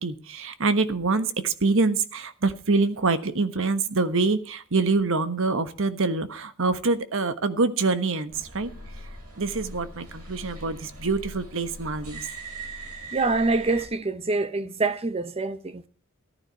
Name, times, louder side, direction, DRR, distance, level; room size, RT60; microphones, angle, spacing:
voice 1, 0.0-8.7 9.4-12.2, right 3 dB, 65° right, 1.3 m, -25 dB
sound 1, 8.3-13.8, right 2 dB, 90° right, 7.7 m, -40 dB
voice 2, 13.1-15.9, right 3 dB, 25° right, 0.9 m, -25 dB
14.0 x 11.5 x 4.6 m
head